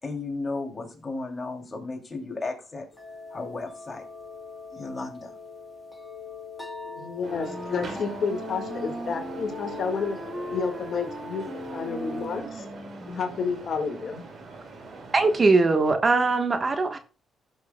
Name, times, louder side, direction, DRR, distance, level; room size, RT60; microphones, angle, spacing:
voice 1, 0.0-2.9 3.3-4.0 4.7-5.4, left 3 dB, 30° left, 2 dB, 2.7 m, -34 dB
sound 1, 2.9-12.4, left 4 dB, 5° left, 3.1 m, -41 dB
voice 2, 6.9-11.4 11.7-12.6 13.0-14.3, left 5 dB, 60° left, 5 dB, 1.7 m, -30 dB
sound 2, 7.2-15.4, right 3 dB, 60° right, 3.6 m, -43 dB
Wind instrument woodwind instrument, 7.4-13.6, right 1 dB, 15° right, 1.2 m, -39 dB
voice 3, 15.1-17.0, right 3 dB, 35° right, 8 dB, 1.2 m, -21 dB
16.0 x 6.5 x 2.2 m, 0.36 s
supercardioid pair, 65°, 0 cm